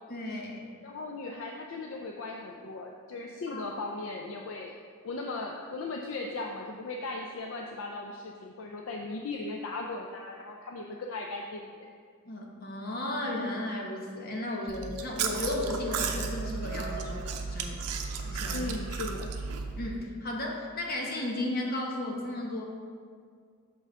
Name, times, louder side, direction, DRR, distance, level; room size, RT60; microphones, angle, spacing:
voice 1, 0.1-0.7 3.5-3.6 12.3-17.8 18.2-18.7 19.7-22.6, left 1 dB, 40° left, -1 dB, 1.0 m, -34 dB
voice 2, 0.8-4.8 5.0-11.7 18.5-19.3, left 3 dB, 60° left, 1 dB, 0.4 m, -37 dB
Chewing mastication, 14.7-20.0, right 5 dB, 90° right, 0.6 m, -34 dB
Laughter, 16.3-19.6, right 4 dB, 45° right, 0.7 m, -48 dB
6.4 x 5.5 x 3.6 m, 2.1 s
head